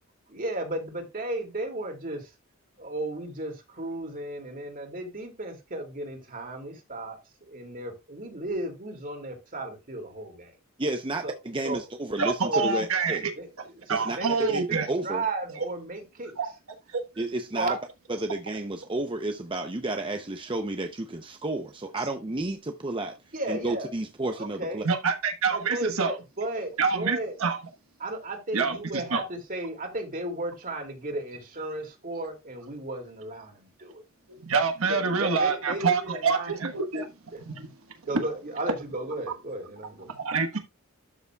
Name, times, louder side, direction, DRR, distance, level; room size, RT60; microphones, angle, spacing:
voice 1, 0.3-2.3 2.8-7.2 7.5-10.5 11.2-11.3 11.6-11.8 12.4-12.7 13.4-13.5 14.2-16.3 17.5-17.8 23.3-23.9 24.4-24.9 25.5-27.3 28.0-34.0 34.9-36.5 37.3-37.4 38.1-40.1, right 2 dB, 40° right, 2.4 m, -34 dB
voice 2, 10.8-13.3 13.9-14.2 14.5-14.6 14.9-15.2 17.2-17.8 18.1-23.2 23.5-24.9, right 2 dB, 25° right, 0.6 m, -31 dB
voice 3, 12.2-13.3 13.9-14.9 16.4-16.5 16.9-17.0 24.8-26.1 26.8-27.6 28.5-29.2 34.3-37.1 37.4-37.7 38.0-38.1 40.1-40.6, right 5 dB, 80° right, 1.2 m, -26 dB
12.0 x 6.9 x 2.3 m
head